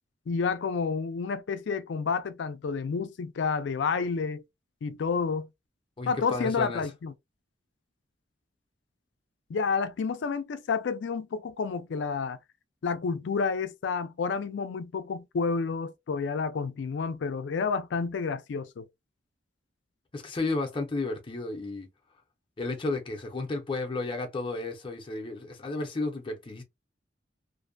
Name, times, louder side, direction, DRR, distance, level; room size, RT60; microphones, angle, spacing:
voice 1, 0.3-4.4 4.8-5.5 6.1-7.1 9.5-12.4 12.8-18.9, left 5 dB, 75° left, 0.4 m, -30 dB
voice 2, 6.0-6.9 20.1-21.9 22.6-26.6, left 3 dB, 30° left, 0.5 m, -32 dB
2.5 x 2.1 x 2.5 m
head